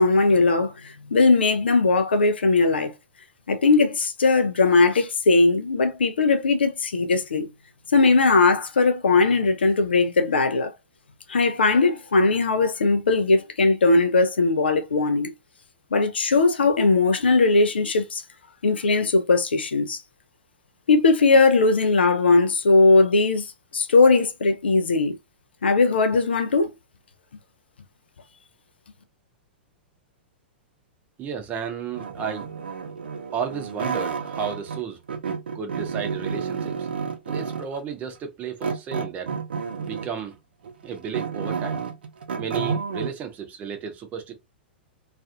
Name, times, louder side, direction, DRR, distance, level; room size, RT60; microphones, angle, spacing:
voice 1, 0.0-2.9 3.5-7.5 7.9-10.7 11.3-15.3 15.9-18.2 18.6-20.0 20.9-23.5 23.7-25.2 25.6-26.7, left 3 dB, 70° left, 0.5 m, -19 dB
voice 2, 31.2-32.5 33.3-35.0 35.5-36.9 37.3-39.4 39.8-40.4 40.8-41.8 42.4-44.3, right 7 dB, 25° right, 0.7 m, -33 dB
sound 1, 31.9-34.8 35.1-37.8 38.6-40.2 40.6-43.1, right 6 dB, 65° right, 0.5 m, -30 dB
2.4 x 2.4 x 2.4 m
figure-of-eight pair, 100°, 6 cm